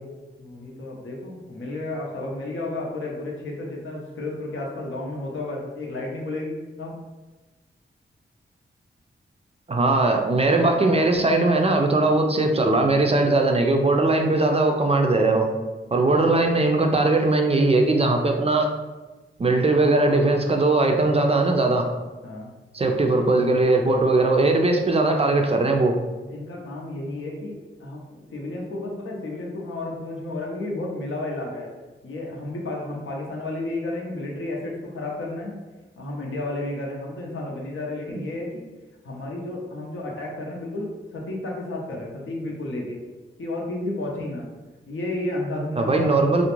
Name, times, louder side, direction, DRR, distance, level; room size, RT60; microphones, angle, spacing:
voice 1, 0.4-7.0 22.2-22.5 26.3-31.7 32.0-35.6 36.0-38.6 39.0-43.0 43.4-44.5 44.9-46.4, left 2 dB, 70° left, -1 dB, 0.6 m, -32 dB
voice 2, 9.7-15.5 15.9-18.7 19.4-21.9 22.7-26.0 45.8-46.5, right 2 dB, 30° right, 3 dB, 0.4 m, -20 dB
2.4 x 2.1 x 3.0 m, 1.2 s
cardioid pair, 45°, 21 cm